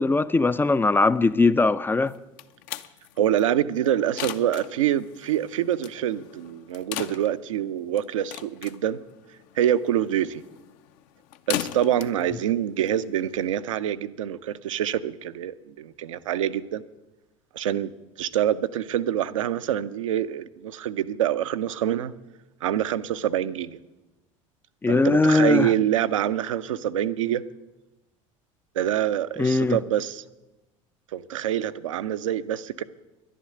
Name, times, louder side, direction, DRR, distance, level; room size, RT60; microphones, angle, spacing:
voice 1, 0.0-2.1 24.8-25.7 29.4-29.8, left 3 dB, 10° left, 0.4 m, -20 dB
sound 1, 2.1-13.5, left 12 dB, 50° left, 0.7 m, -39 dB
voice 2, 3.2-9.0 9.6-10.4 11.5-16.8 17.5-17.9 18.2-22.1 22.6-23.8 24.9-27.4 28.7-30.2 31.1-32.8, right 11 dB, 70° right, 0.6 m, -26 dB
11.0 x 10.0 x 8.7 m
figure-of-eight pair, 65°, 17 cm